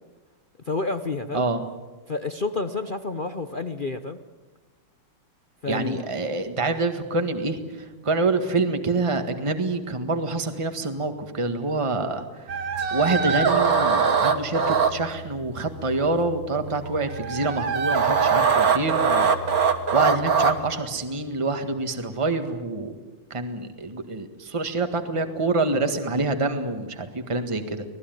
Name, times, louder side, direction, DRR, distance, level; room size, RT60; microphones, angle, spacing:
voice 1, 0.7-1.5 2.1-4.2 5.6-6.1, left 3 dB, 55° left, 9 dB, 0.5 m, -29 dB
voice 2, 5.7-19.3 19.9-22.9 23.3-27.8, right 3 dB, 15° right, 6 dB, 1.6 m, -26 dB
sound 1, 12.5-20.7, right 5 dB, 50° right, 1.9 m, -23 dB
25.5 x 18.5 x 9.2 m, 1.2 s
omnidirectional pair, 2.2 m